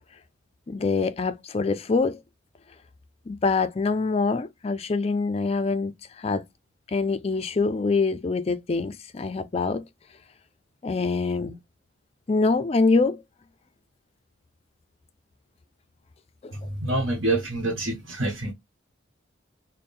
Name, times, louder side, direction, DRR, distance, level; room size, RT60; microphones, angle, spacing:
voice 1, 0.7-2.2 3.3-5.9 6.2-6.4 6.9-9.8 10.8-11.6 12.3-13.2 16.4-16.5, left 4 dB, 30° left, 0.3 m, -24 dB
voice 2, 16.8-18.5, right 2 dB, 75° right, 1.0 m, -26 dB
3.4 x 2.1 x 4.2 m
head